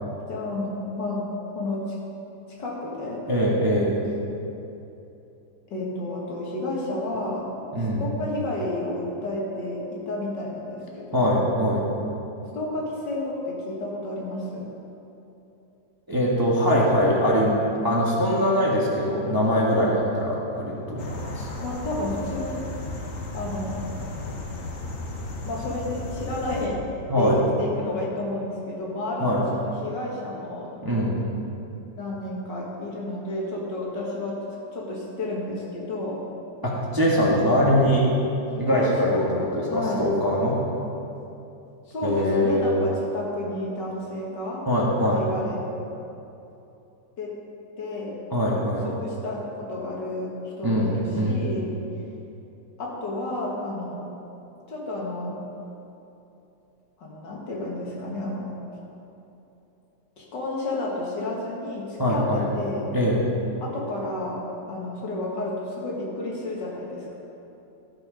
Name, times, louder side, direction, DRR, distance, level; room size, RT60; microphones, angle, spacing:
voice 1, 0.3-2.0 2.6-3.2 5.7-7.5 8.0-11.3 12.5-14.7 21.6-22.6 23.3-24.0 25.4-26.8 27.2-30.8 32.0-34.4 34.7-36.2 38.5-40.1 41.9-44.7 45.0-45.6 47.2-47.4 47.8-48.2 48.8-50.3 50.6-51.7 52.8-54.1 54.7-55.4 57.0-58.6 60.2-62.9 63.6-64.4 64.7-67.1, left 2 dB, 65° left, -3 dB, 2.4 m, -31 dB
voice 2, 3.3-4.0 7.7-8.0 11.1-11.9 16.1-17.6 17.8-21.5 27.1-27.5 29.2-29.4 30.8-31.3 36.6-38.1 38.6-39.2 39.5-40.6 42.0-42.7 44.7-45.2 48.3-48.8 50.6-51.4 62.0-62.5 62.9-63.2, equal, 15° right, -5 dB, 1.3 m, -22 dB
sound 1, 21.0-26.7, left 2 dB, 50° left, 1.4 m, -34 dB
13.5 x 7.6 x 5.1 m, 2.8 s
omnidirectional pair, 2.0 m